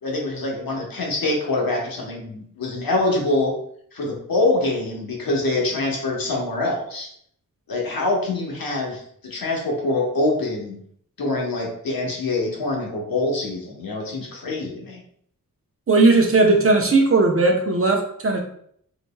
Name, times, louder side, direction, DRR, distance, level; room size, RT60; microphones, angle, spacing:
voice 1, 0.0-3.5 3.9-7.1 7.7-10.8 11.2-15.0, left 2 dB, 75° left, -1 dB, 1.1 m, -25 dB
voice 2, 15.9-18.4, right 3 dB, 40° right, 2 dB, 0.7 m, -17 dB
4.0 x 3.2 x 2.2 m, 0.64 s
wide cardioid pair, 75°, 35 cm